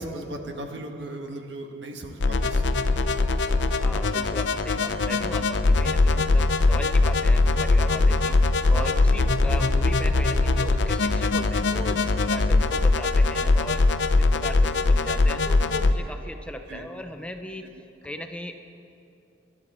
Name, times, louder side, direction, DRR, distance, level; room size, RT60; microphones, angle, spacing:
voice 1, 0.0-2.9 8.2-8.4 8.8-9.2 16.7-16.8, right 1 dB, 70° right, 4 dB, 1.5 m, -37 dB
sound 1, 2.2-15.9, left 3 dB, 70° left, 0.6 m, -21 dB
voice 2, 3.8-8.3 8.7-13.8 14.2-17.7 18.0-18.6, left 1 dB, 5° left, 5 dB, 0.6 m, -38 dB
24.0 x 11.5 x 4.3 m, 2.6 s
head